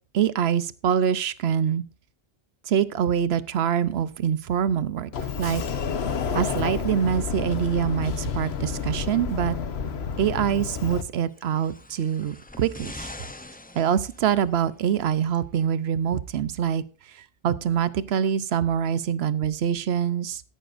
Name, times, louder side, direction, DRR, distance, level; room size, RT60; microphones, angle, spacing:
voice 1, 0.1-1.8 2.7-5.1 5.4-5.6 6.3-9.6 10.2-13.1 13.7-16.8 17.1-20.4, right 8 dB, 70° right, 16 dB, 1.0 m, -25 dB
Sliding door, 5.1-11.0, left 6 dB, 75° left, 1.2 m, -29 dB
sound 1, 11.3-14.7 15.6-15.7, left 2 dB, 15° left, 0.4 m, -43 dB
13.5 x 11.5 x 2.5 m, 0.35 s
omnidirectional pair, 1.1 m